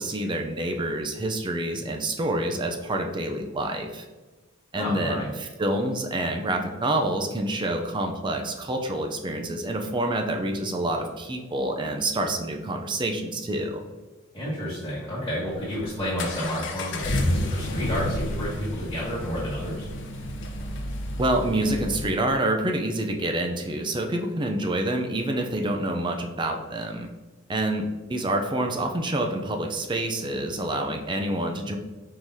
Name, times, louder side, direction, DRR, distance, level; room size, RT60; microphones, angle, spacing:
voice 1, 0.0-4.0 4.7-13.8 21.2-27.1 27.5-31.8, right 1 dB, 25° right, 4 dB, 0.4 m, -27 dB
voice 2, 4.7-5.3 14.3-19.9, equal, 15° left, -11 dB, 1.2 m, -31 dB
Accelerating revving vroom, 15.5-22.1, left 1 dB, 60° left, 0.6 m, -30 dB
4.6 x 3.8 x 2.7 m, 1.2 s
head